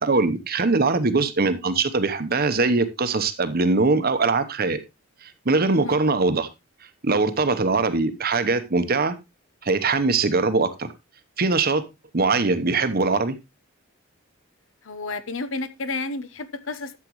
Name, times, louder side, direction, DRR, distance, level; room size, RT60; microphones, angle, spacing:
voice 1, 0.0-4.8 5.2-6.5 7.0-9.1 9.6-10.9 11.4-11.8 12.1-13.3, right 3 dB, 45° right, 1.0 m, -22 dB
voice 2, 14.8-17.0, left 3 dB, 65° left, 0.9 m, -31 dB
12.0 x 7.5 x 3.1 m
head